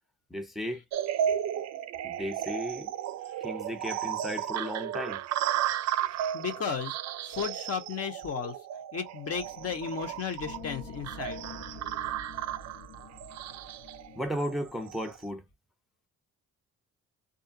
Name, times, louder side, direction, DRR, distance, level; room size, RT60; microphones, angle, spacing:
voice 1, 0.3-0.8 2.0-2.9 3.4-5.2 14.2-15.4, equal, ahead, 0.7 m, -35 dB
sound 1, 0.9-15.2, right 11 dB, 60° right, 0.4 m, -34 dB
voice 2, 6.3-7.0 7.2-8.5 8.9-11.4, left 6 dB, 55° left, 1.0 m, -34 dB
sound 2, 9.3-15.3, left 3 dB, 85° left, 0.8 m, -47 dB
2.6 x 2.0 x 2.5 m
cardioid pair, 90°, 30 cm